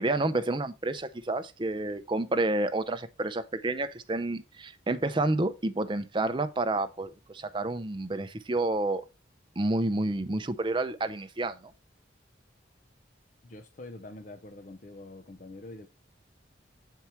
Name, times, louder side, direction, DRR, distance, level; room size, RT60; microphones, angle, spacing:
voice 1, 0.0-9.1 9.6-11.7, right 2 dB, 25° right, 0.6 m, -29 dB
voice 2, 13.4-15.9, left 2 dB, 40° left, 0.6 m, -45 dB
7.1 x 4.6 x 4.4 m
head